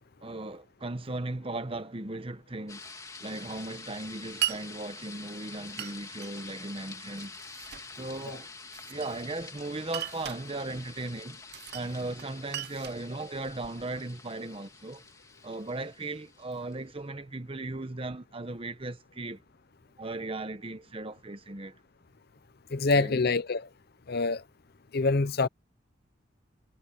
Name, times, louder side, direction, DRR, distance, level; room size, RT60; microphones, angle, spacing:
voice 1, 0.2-2.8 3.2-7.4 7.9-8.5 8.9-11.4 11.7-15.0 15.4-19.4 20.0-21.8 22.9-23.2, right 2 dB, 30° right, 1.1 m, -37 dB
sound 1, 2.7-16.8, left 4 dB, 20° left, 2.3 m, -47 dB
Glass, 4.4-4.6 5.8-6.3 7.2-7.9 8.7-9.4 9.9-10.4 11.5-11.9 12.2-13.8, right 11 dB, 55° right, 0.7 m, -37 dB
voice 2, 22.7-23.7 24.1-24.4 24.9-25.5, left 3 dB, 55° left, 0.7 m, -25 dB
head